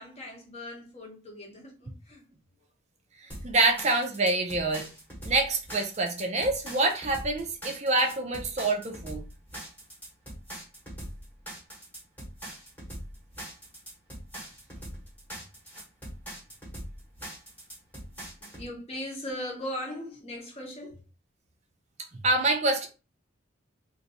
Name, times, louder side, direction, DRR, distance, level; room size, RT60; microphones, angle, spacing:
voice 1, 0.0-2.2 18.4-21.0, left 1 dB, 30° left, 0.9 m, -39 dB
voice 2, 3.2-4.9 5.2-9.3 22.2-22.9, right 2 dB, 35° right, 0.5 m, -26 dB
sound 1, 3.3-18.7, equal, 10° left, 1.1 m, -42 dB
2.6 x 2.5 x 4.0 m
head